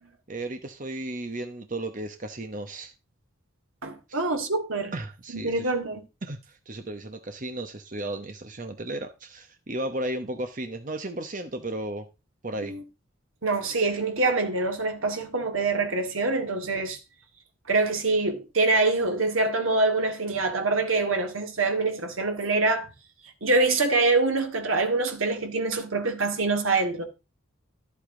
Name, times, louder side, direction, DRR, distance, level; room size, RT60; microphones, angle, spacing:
voice 1, 0.3-2.9 4.1-4.2 4.9-5.6 6.2-12.1 12.4-12.7, right 1 dB, 40° right, 1.0 m, -34 dB
voice 2, 3.8-4.9 5.3-6.0 12.5-12.8 13.4-17.0 17.7-22.9 23.4-27.0, right 3 dB, 75° right, 2.2 m, -25 dB
12.5 x 8.3 x 3.8 m
head